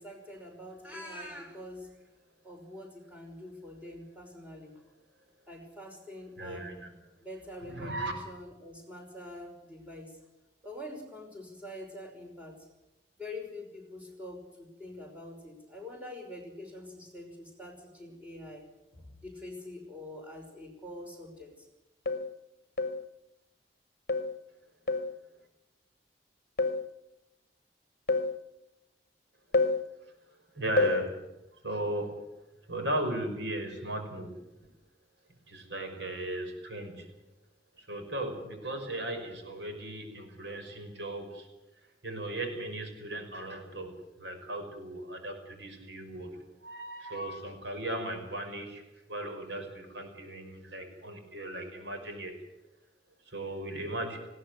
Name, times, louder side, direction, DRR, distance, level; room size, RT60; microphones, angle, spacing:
voice 1, 0.0-1.9 2.4-4.7 5.5-6.7 7.2-10.2 10.6-12.6 13.2-18.6 18.9-21.7, left 1 dB, 10° right, 1 dB, 5.6 m, -45 dB
voice 2, 6.4-6.9 7.6-8.1 30.0-30.1 30.5-31.2 31.5-32.2 32.7-34.4 35.5-37.1 37.8-41.5 42.0-48.8 49.1-52.3 53.3-54.2, right 1 dB, 75° right, 5 dB, 5.7 m, -37 dB
sound 1, 21.0-21.1 22.1-22.4 22.8-23.1 24.1-24.4 24.9-25.2 26.6-26.9 28.1-28.4 29.5-29.9 30.8-31.1, left 3 dB, 55° left, 1.1 m, -28 dB
20.0 x 16.5 x 9.3 m, 0.95 s
head